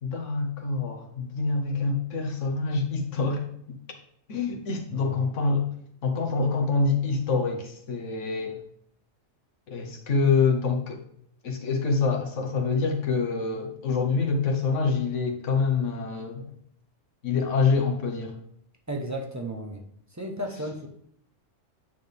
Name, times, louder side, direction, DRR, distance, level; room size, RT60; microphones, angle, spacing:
voice 1, 0.0-3.8 4.3-5.7 6.0-8.6 9.7-11.0 11.4-16.5 17.2-18.4, left 4 dB, 70° left, 3 dB, 1.4 m, -26 dB
voice 2, 4.9-5.3 18.9-19.8 20.1-20.9, right 1 dB, 15° right, 2 dB, 0.7 m, -34 dB
8.9 x 4.1 x 3.4 m, 0.66 s
omnidirectional pair, 1.3 m